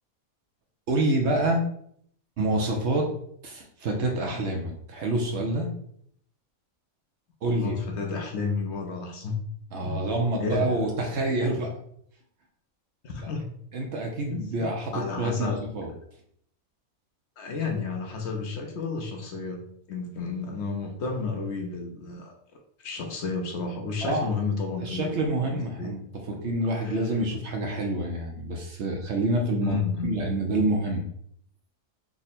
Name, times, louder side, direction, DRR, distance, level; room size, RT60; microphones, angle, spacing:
voice 1, 0.9-1.6 2.4-3.1 3.4-5.7 7.4-7.8 9.7-11.7 13.2-13.3 13.7-15.9 24.0-24.3 24.8-26.0 26.3-31.0, right 1 dB, 60° right, 1 dB, 0.8 m, -27 dB
voice 2, 7.5-9.4 9.8-10.0 10.4-10.7 13.0-13.5 14.3-15.6 17.4-19.6 19.9-22.3 22.8-26.0 26.8-27.0 29.6-30.1, left 4 dB, 65° left, 2 dB, 0.8 m, -32 dB
3.6 x 2.1 x 4.1 m, 0.66 s
omnidirectional pair, 1.5 m